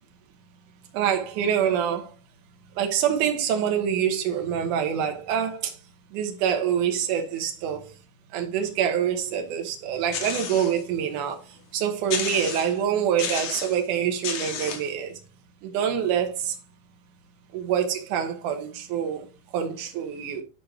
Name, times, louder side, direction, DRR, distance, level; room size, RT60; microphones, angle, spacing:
voice 1, 0.9-2.1 2.8-5.7 6.1-7.9 8.3-11.4 11.7-15.1 15.6-16.6 17.5-19.3 19.5-20.4, right 8 dB, 65° right, 2.1 m, -26 dB
sound 1, 10.1-10.8 11.3-11.4 12.1-12.8 13.2-13.8 14.2-14.9, left 7 dB, 70° left, 1.6 m, -32 dB
11.5 x 4.3 x 3.4 m
omnidirectional pair, 5.1 m